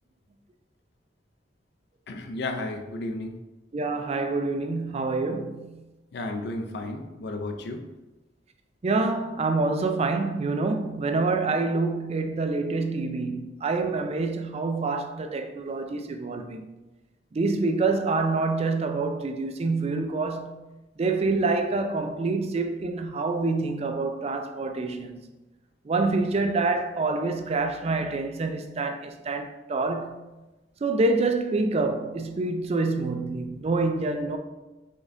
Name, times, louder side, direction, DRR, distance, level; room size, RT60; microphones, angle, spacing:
voice 1, 2.1-3.3 6.1-7.8, left 2 dB, 65° left, 0.5 m, -33 dB
voice 2, 3.7-5.8 8.8-16.7 17.3-20.6 21.0-25.3 25.9-30.2 30.8-34.4, right 3 dB, 35° right, 0.4 m, -26 dB
5.0 x 3.7 x 2.6 m
head